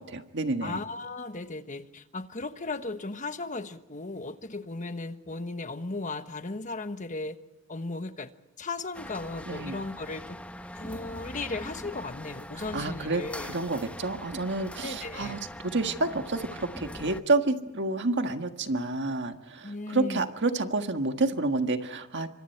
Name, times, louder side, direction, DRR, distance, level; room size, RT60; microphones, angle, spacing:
voice 1, 0.0-0.8 9.5-9.8 12.7-15.4 15.7-22.3, right 2 dB, 55° right, 7 dB, 1.6 m, -29 dB
voice 2, 0.6-7.4 7.7-8.3 8.6-10.4 10.7-13.6 14.8-15.4 19.6-20.2, left 3 dB, 35° left, 9 dB, 1.3 m, -36 dB
sound 1, 8.9-17.2, left 1 dB, 5° left, 1.0 m, -42 dB
27.5 x 25.5 x 4.6 m, 1.0 s
head